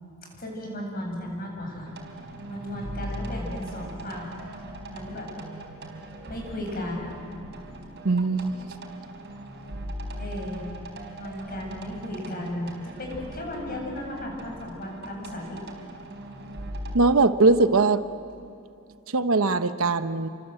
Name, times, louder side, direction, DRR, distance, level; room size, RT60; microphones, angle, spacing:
voice 1, 0.4-1.9 2.2-4.3 4.8-5.3 5.7-5.8 6.3-7.2 10.2-10.6 11.2-12.7 13.0-15.6, left 1 dB, 45° left, 0 dB, 7.8 m, -35 dB
sound 1, 1.9-17.0, right 1 dB, 55° right, 4.5 m, -40 dB
voice 2, 8.0-8.5 16.9-18.0 19.1-20.3, right 3 dB, 70° right, 11 dB, 0.9 m, -20 dB
30.0 x 25.5 x 7.8 m, 2.6 s
head